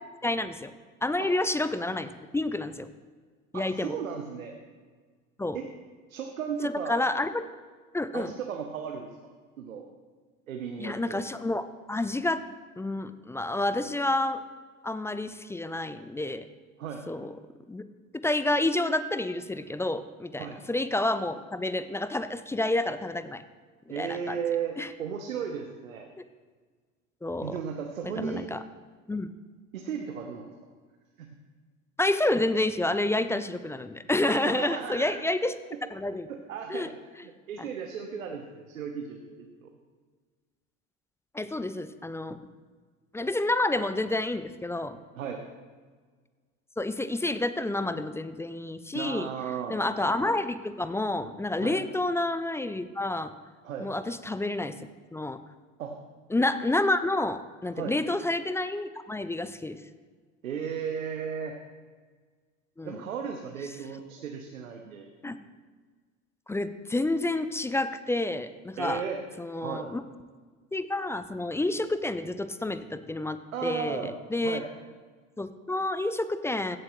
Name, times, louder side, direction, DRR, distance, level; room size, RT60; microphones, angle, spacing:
voice 1, 0.2-0.7 1.0-2.9 3.5-3.9 5.4-5.6 6.6-7.4 7.9-8.3 10.8-12.4 12.8-14.4 14.8-16.5 17.1-17.3 17.7-17.8 18.2-23.4 23.9-24.4 24.8-24.9 27.2-27.5 28.0-28.6 29.1-29.3 32.0-35.5 35.9-36.3 36.7-36.9 37.6-37.7 41.3-42.4 43.1-45.0 46.8-49.3 49.7-53.3 53.8-54.8 55.1-55.4 56.3-59.8 62.8-63.0 65.2-65.4 66.5-69.0 69.4-70.0 70.7-73.4 73.6-74.6 75.4-76.8, left 2 dB, 5° left, 12 dB, 0.4 m, -29 dB
voice 2, 3.5-4.5 5.5-5.7 6.1-7.0 8.1-9.1 9.6-9.8 10.5-11.2 16.8-17.0 20.4-20.6 23.9-26.1 27.4-28.4 29.7-30.5 31.2-31.3 34.2-35.2 36.3-36.9 37.2-39.7 45.1-45.4 48.9-49.8 51.6-51.8 53.6-53.9 55.8-56.0 57.7-58.0 60.4-61.6 62.8-65.4 68.8-69.2 69.6-69.9 73.5-74.1 74.4-74.7, right 7 dB, 85° right, 3 dB, 1.0 m, -35 dB
16.0 x 7.6 x 3.1 m, 1.5 s
hypercardioid pair, 75°, 39 cm